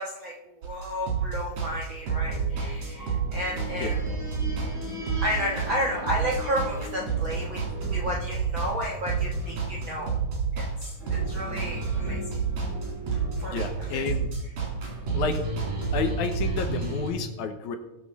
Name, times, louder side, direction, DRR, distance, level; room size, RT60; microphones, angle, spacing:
voice 1, 0.0-4.3 5.2-10.2 10.5-12.4 13.4-14.1, equal, 60° right, -2 dB, 1.3 m, -32 dB
sound 1, 0.6-17.1, right 5 dB, 80° right, 5.2 m, -29 dB
sound 2, 2.0-9.9 11.0-13.6, left 2 dB, ahead, 3.9 m, -41 dB
voice 2, 13.5-14.3 15.1-15.5 15.9-17.8, left 5 dB, 70° left, 6 dB, 2.1 m, -30 dB
19.5 x 6.8 x 4.1 m, 0.98 s
omnidirectional pair, 3.9 m